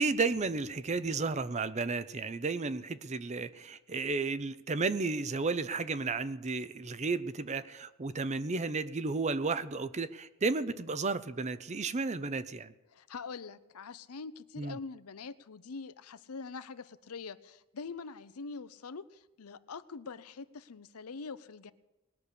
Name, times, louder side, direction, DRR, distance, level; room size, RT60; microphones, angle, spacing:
voice 1, 0.0-12.7 14.6-14.8, right 4 dB, 30° right, 14 dB, 0.6 m, -33 dB
voice 2, 12.9-21.7, left 4 dB, 80° left, 14 dB, 0.7 m, -44 dB
20.0 x 6.7 x 9.8 m, 1.0 s
head